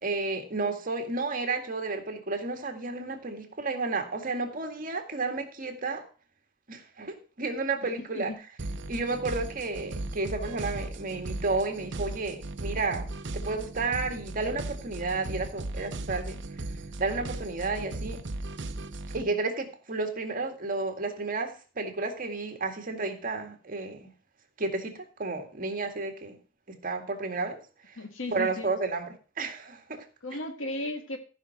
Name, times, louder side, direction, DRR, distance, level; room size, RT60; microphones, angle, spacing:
voice 1, 0.0-6.1 6.7-8.3 8.9-16.4 17.0-18.2 19.1-24.1 24.6-26.4 26.8-27.6 27.9-28.0 28.3-30.0, right 3 dB, 45° right, 5 dB, 1.9 m, -32 dB
voice 2, 8.0-8.4 28.0-28.7 30.2-31.2, left 1 dB, 75° left, 6 dB, 1.9 m, -35 dB
sound 1, 8.6-19.2, right 2 dB, 65° right, 0.8 m, -37 dB
14.5 x 5.6 x 5.8 m, 0.36 s
head